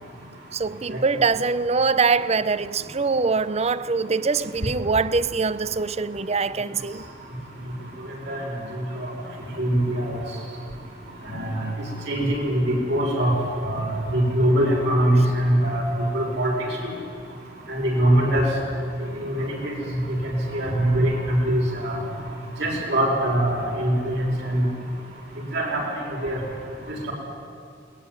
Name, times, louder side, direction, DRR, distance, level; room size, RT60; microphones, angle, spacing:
voice 1, 0.5-7.1, right 4 dB, 35° right, 0.6 m, -23 dB
voice 2, 9.6-10.2 11.3-11.6 12.1-13.3 13.6-15.8 16.1-16.5 17.7-18.5 19.2-19.7 20.2-22.0 22.6-24.7 25.5-25.8 26.2-26.4, right 1 dB, 65° right, 6.2 m, -22 dB
21.5 x 19.0 x 9.9 m
head